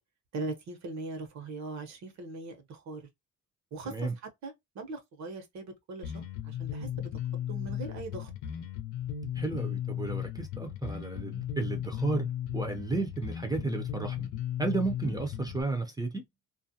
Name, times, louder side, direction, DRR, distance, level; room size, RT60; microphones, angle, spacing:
voice 1, 0.3-3.0 3.7-4.1 4.4-8.3 15.0-15.2, right 3 dB, 65° right, 0.9 m, -40 dB
Bass guitar, 6.0-15.6, left 10 dB, 85° left, 0.7 m, -36 dB
voice 2, 9.4-12.3 12.5-14.3 14.6-16.2, right 3 dB, 15° right, 0.6 m, -33 dB
2.5 x 2.1 x 2.7 m
cardioid pair, 90°, 30 cm